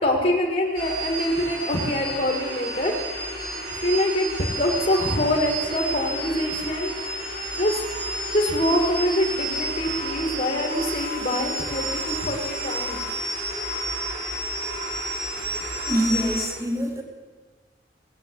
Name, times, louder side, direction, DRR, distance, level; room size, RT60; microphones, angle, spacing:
voice 1, 0.0-2.9 3.8-6.9 7.6-7.8 8.3-13.0, left 1 dB, 40° left, 0 dB, 2.1 m, -24 dB
sound 1, 0.8-16.5, right 1 dB, 75° right, 6.2 m, -31 dB
voice 2, 15.9-17.0, equal, 15° right, 3 dB, 1.8 m, -24 dB
19.0 x 9.1 x 8.2 m, 1.4 s
head